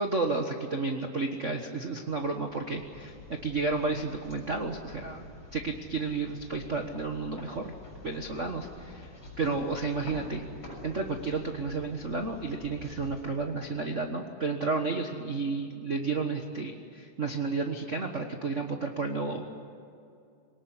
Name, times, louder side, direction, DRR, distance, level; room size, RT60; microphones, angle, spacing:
voice 1, 0.0-3.1 3.4-5.2 5.5-7.7 8.0-9.1 9.4-10.4 10.8-19.4, right 3 dB, 65° right, 4 dB, 0.7 m, -32 dB
sound 1, 2.1-14.2, left 2 dB, 35° left, 7.3 m, -48 dB
23.0 x 19.5 x 9.8 m, 2.5 s
omnidirectional pair, 3.7 m